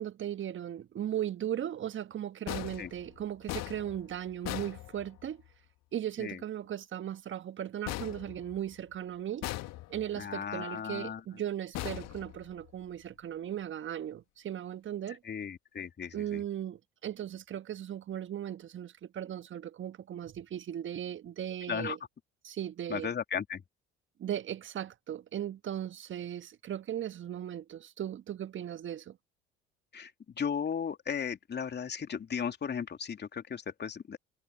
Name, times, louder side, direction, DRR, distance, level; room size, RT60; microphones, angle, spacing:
voice 1, 0.0-5.4 5.9-9.5 9.9-15.2 16.1-22.0 22.4-23.1 24.2-29.2, right 11 dB, 40° right, 1.4 m, -37 dB
sound 1, 2.5-5.5 7.9-8.9 9.4-10.2 11.7-12.8, left 17 dB, 55° left, 2.0 m, -40 dB
voice 2, 10.2-11.2 15.2-16.4 21.7-22.0 22.9-23.6 29.9-30.1 30.4-34.2, left 7 dB, 35° left, 3.1 m, -35 dB
figure-of-eight pair, 60°, 31 cm